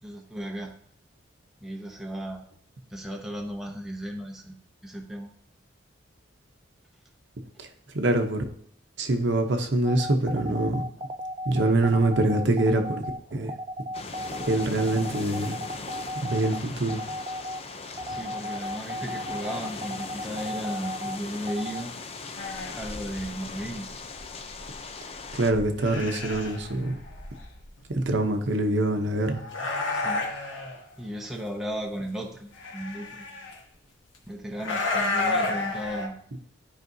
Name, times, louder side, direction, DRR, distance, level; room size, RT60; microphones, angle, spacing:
voice 1, 0.0-0.7 1.6-2.4 2.9-4.6 4.8-5.3 17.1-17.2 18.1-22.0 22.7-24.0 29.9-30.3 31.0-33.5 34.2-36.2, equal, ahead, -1 dB, 0.7 m, -35 dB
voice 2, 7.9-8.4 9.0-10.8 11.4-13.5 14.5-15.6 16.2-17.0 25.3-27.0 27.9-29.4, right 2 dB, 60° right, 5 dB, 0.8 m, -24 dB
sound 1, 9.8-21.8, equal, 25° right, 0.3 m, -35 dB
sound 2, 13.9-25.5, left 4 dB, 30° left, 0.5 m, -39 dB
sound 3, 22.4-28.1 29.2-30.8 32.6-33.6 34.6-36.1, left 2 dB, 70° left, 1.3 m, -32 dB
12.0 x 5.0 x 2.7 m, 0.64 s
head